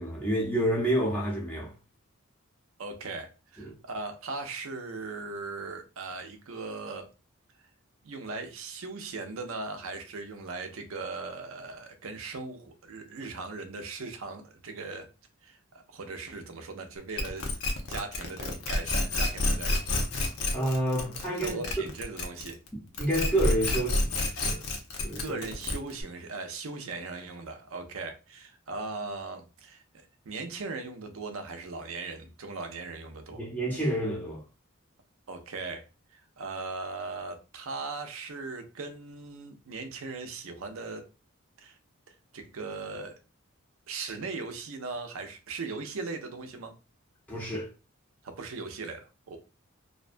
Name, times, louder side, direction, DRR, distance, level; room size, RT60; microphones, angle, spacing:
voice 1, 0.0-1.7 3.6-3.7 20.5-21.6 22.7-24.1 24.4-24.6 25.0-25.4 33.3-34.4 47.3-47.7, right 1 dB, 10° left, 0.6 m, -29 dB
voice 2, 2.8-7.1 8.0-15.1 15.4-17.6 17.9-19.8 21.3-22.6 25.2-29.8 30.2-33.4 35.3-35.8 36.1-41.1 41.6-41.7 42.3-43.1 43.9-46.7 48.2-49.4, right 3 dB, 75° right, 0.5 m, -38 dB
sound 1, 17.2-22.7 22.9-26.0, left 2 dB, 90° left, 0.6 m, -29 dB
2.5 x 2.2 x 2.5 m
head